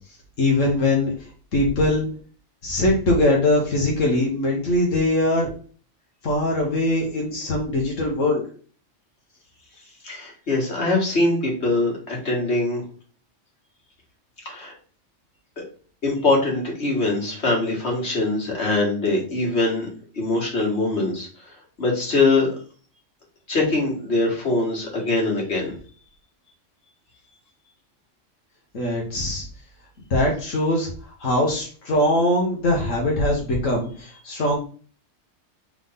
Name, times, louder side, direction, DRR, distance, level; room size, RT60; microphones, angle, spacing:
voice 1, 0.4-1.1 1.5-2.1 2.6-5.5 6.2-8.4 28.7-29.4 30.1-30.9 31.2-34.6, left 1 dB, 90° left, -2 dB, 1.7 m, -21 dB
voice 2, 10.0-12.8 14.4-14.7 15.6-15.7 16.0-19.9 20.1-21.3 21.8-22.5 23.5-25.7, left 2 dB, 60° left, -2 dB, 2.4 m, -22 dB
4.5 x 3.7 x 5.5 m, 0.42 s
omnidirectional pair, 1.3 m